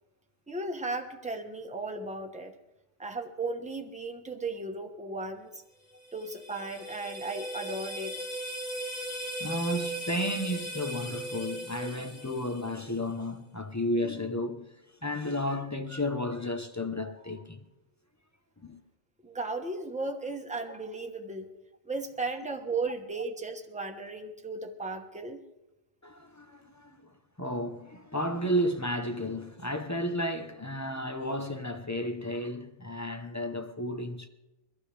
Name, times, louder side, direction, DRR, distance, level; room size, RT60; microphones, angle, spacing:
voice 1, 0.5-2.6 3.0-5.6 6.1-8.2 19.2-21.5 21.8-25.4, right 3 dB, 5° right, 1.1 m, -35 dB
sound 1, 5.9-13.0, right 1 dB, 50° left, 1.7 m, -38 dB
voice 2, 9.4-14.8 15.0-17.6 18.6-18.8 26.0-34.3, equal, 15° left, 0.7 m, -33 dB
23.0 x 14.5 x 3.4 m
omnidirectional pair, 1.3 m